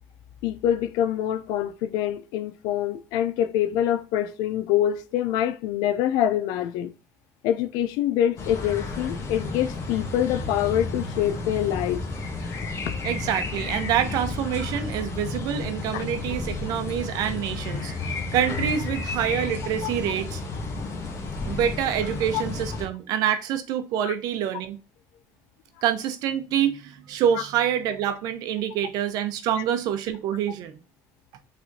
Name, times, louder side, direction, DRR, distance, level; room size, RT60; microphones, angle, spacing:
voice 1, 0.4-6.9 7.4-12.0 13.0-13.1 15.9-16.1 19.8-19.9 22.3-22.4 24.0-24.1 27.3-27.4, left 11 dB, 75° left, 0.4 m, -25 dB
sound 1, 8.4-22.9, left 3 dB, 45° left, 1.3 m, -32 dB
voice 2, 13.0-20.4 21.5-24.8 25.8-30.8, right 9 dB, 70° right, 0.8 m, -26 dB
5.8 x 3.4 x 2.6 m
supercardioid pair, 100°, 7 cm